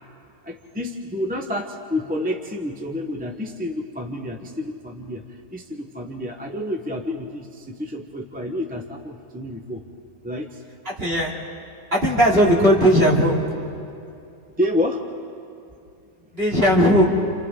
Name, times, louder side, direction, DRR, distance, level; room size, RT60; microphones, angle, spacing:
voice 1, 0.4-9.8 10.2-10.6 14.6-15.0, left 1 dB, 5° right, 2 dB, 0.7 m, -29 dB
voice 2, 10.8-11.3 11.9-13.4 16.3-17.1, equal, 35° right, -4 dB, 3.2 m, -17 dB
29.0 x 28.0 x 3.8 m, 2.5 s
omnidirectional pair, 1.9 m